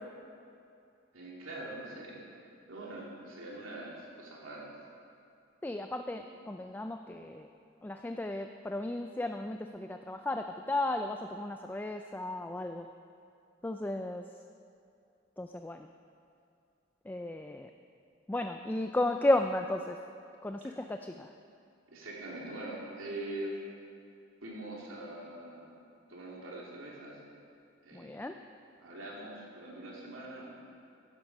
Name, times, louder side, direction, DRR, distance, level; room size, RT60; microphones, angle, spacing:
voice 1, 1.1-2.2 2.7-4.7 6.1-6.3 20.6-20.7 21.9-23.6 24.4-25.7 26.1-27.2 27.8-28.1 28.8-30.5, right 1 dB, 90° right, -4 dB, 2.9 m, -43 dB
voice 2, 5.6-7.5 7.8-12.9 13.6-14.2 15.4-15.9 17.1-17.7 18.3-20.0 20.4-21.3 27.9-28.4, left 1 dB, 10° left, 6 dB, 0.3 m, -34 dB
13.0 x 10.5 x 5.4 m, 2.5 s
head